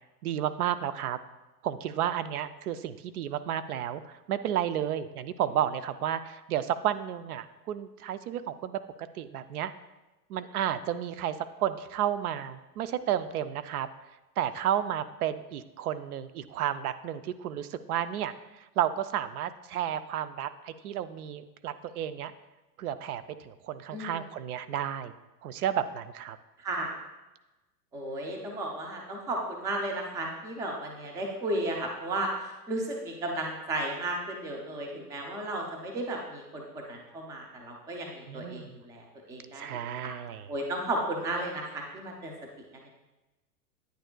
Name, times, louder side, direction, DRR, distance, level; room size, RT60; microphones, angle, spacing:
voice 1, 0.2-1.2 1.6-8.8 9.1-9.7 10.3-13.9 14.4-22.3 22.8-25.1 25.4-26.4 38.3-38.8 39.5-40.5, right 10 dB, 65° right, 13 dB, 0.5 m, -32 dB
voice 2, 23.9-24.2 26.6-26.9 27.9-40.1 40.5-42.3 42.7-42.9, right 1 dB, 5° right, 1 dB, 0.4 m, -34 dB
9.4 x 6.5 x 2.2 m, 1.1 s
hypercardioid pair, 115°, 49 cm